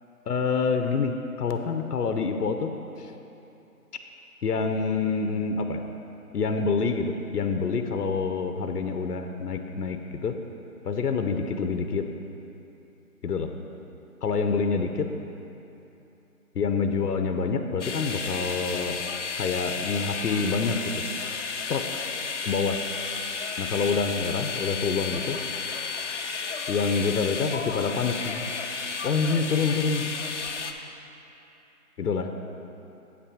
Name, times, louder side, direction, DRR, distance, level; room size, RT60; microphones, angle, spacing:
voice 1, 0.3-2.7 3.0-3.1 4.4-5.8 6.3-10.4 10.8-12.0 13.2-13.5 14.2-15.1 16.5-19.0 19.4-21.1 21.7-21.8 22.4-22.8 23.6-25.4 26.7-28.4 29.0-30.1 32.0-32.3, left 5 dB, 85° left, 6 dB, 0.7 m, -27 dB
sound 1, 17.8-30.7, left 5 dB, 50° left, 0.5 m, -33 dB
8.1 x 6.0 x 4.8 m, 3.0 s
hypercardioid pair, 170°, 46 cm